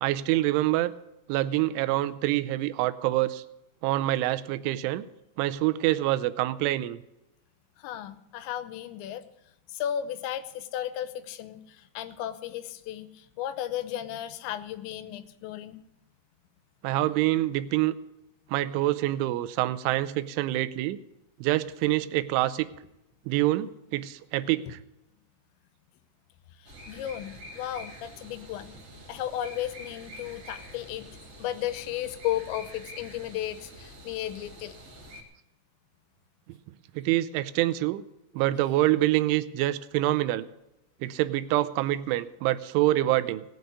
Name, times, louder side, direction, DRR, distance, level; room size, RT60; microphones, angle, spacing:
voice 1, 0.0-0.9 1.3-3.4 3.8-5.1 5.4-7.0 16.8-17.9 18.5-21.0 21.4-22.7 23.3-24.8 37.0-38.0 38.3-40.5 41.0-43.4, right 16 dB, 90° right, 13 dB, 3.1 m, -26 dB
voice 2, 7.8-9.3 9.7-15.8 24.7-24.8 26.6-28.7 29.1-31.1 31.4-34.8, left 11 dB, 80° left, 14 dB, 3.0 m, -34 dB
sound 1, 26.6-35.2, equal, 25° right, 2.7 m, -46 dB
18.0 x 6.5 x 9.4 m, 0.89 s
omnidirectional pair, 5.4 m